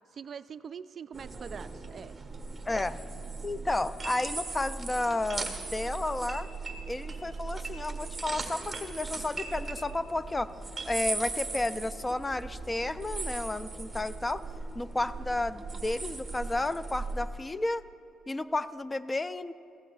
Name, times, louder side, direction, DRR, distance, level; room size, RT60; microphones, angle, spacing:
voice 1, 0.1-2.1, right 7 dB, 50° right, 14 dB, 0.3 m, -43 dB
sound 1, 1.1-17.3, right 3 dB, 20° right, 1.4 m, -38 dB
voice 2, 2.7-3.0 3.4-6.5 6.9-10.5 10.9-14.4 14.7-17.8 18.3-19.5, left 2 dB, 20° left, 14 dB, 0.4 m, -32 dB
18.0 x 15.0 x 2.4 m, 2.5 s
cardioid pair, 90°, 0 cm